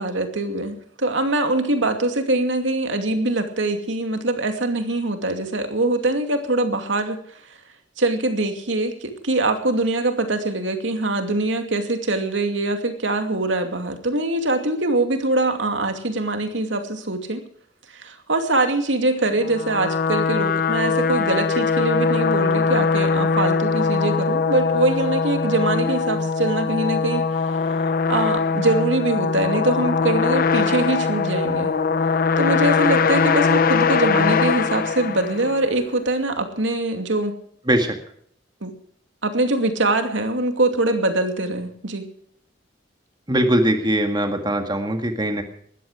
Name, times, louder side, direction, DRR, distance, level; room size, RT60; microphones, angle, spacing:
voice 1, 0.0-7.2 7.5-7.6 8.0-17.4 17.9-27.6 28.1-31.7 32.4-37.3 38.6-38.7 39.2-42.1, right 2 dB, 90° right, 6 dB, 2.6 m, -23 dB
sound 1, 19.4-35.7, left 5 dB, 50° left, 0.8 m, -21 dB
voice 2, 43.3-45.4, right 1 dB, 25° right, 5 dB, 1.9 m, -21 dB
19.5 x 14.0 x 4.9 m, 0.63 s
head